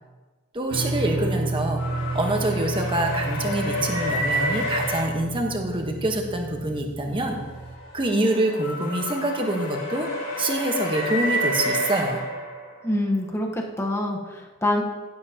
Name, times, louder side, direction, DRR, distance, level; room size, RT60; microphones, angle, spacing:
voice 1, 0.5-7.4 7.9-10.1 10.4-12.2, right 1 dB, 25° right, 2 dB, 1.1 m, -26 dB
sound 1, 0.7-7.8, right 3 dB, 85° right, 1.2 m, -31 dB
sound 2, 1.8-5.1 7.4-13.0, equal, 80° left, 3.4 m, -29 dB
voice 2, 12.8-14.8, left 1 dB, 10° left, 0 dB, 1.0 m, -25 dB
15.0 x 7.7 x 2.9 m, 1.3 s
head